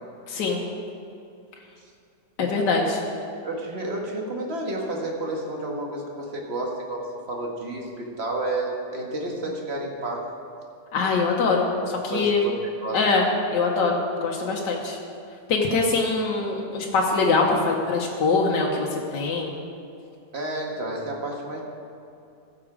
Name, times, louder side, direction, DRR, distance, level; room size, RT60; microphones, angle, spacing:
voice 1, 0.3-0.6 2.4-3.0 10.9-11.7 12.0-12.4 12.9-13.3 13.5-15.0 15.5-19.5, left 4 dB, 85° left, -1 dB, 1.7 m, -23 dB
voice 2, 3.3-10.3 11.8-12.5 12.8-13.0 20.3-21.6, right 2 dB, 40° right, 0 dB, 1.7 m, -31 dB
15.0 x 7.3 x 4.9 m, 2.6 s
omnidirectional pair, 1.8 m